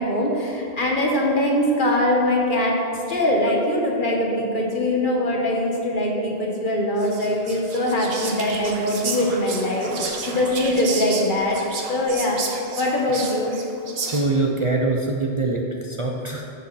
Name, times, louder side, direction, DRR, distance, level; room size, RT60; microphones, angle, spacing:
voice 1, 0.0-2.8 3.1-11.6 11.9-12.4 12.8-13.5, left 1 dB, 50° left, -1 dB, 1.6 m, -22 dB
Whispering, 7.0-14.5, right 4 dB, 70° right, 1.2 m, -32 dB
voice 2, 14.0-16.5, right 3 dB, 35° right, -1 dB, 0.7 m, -24 dB
13.5 x 6.4 x 4.2 m, 2.6 s
omnidirectional pair, 1.1 m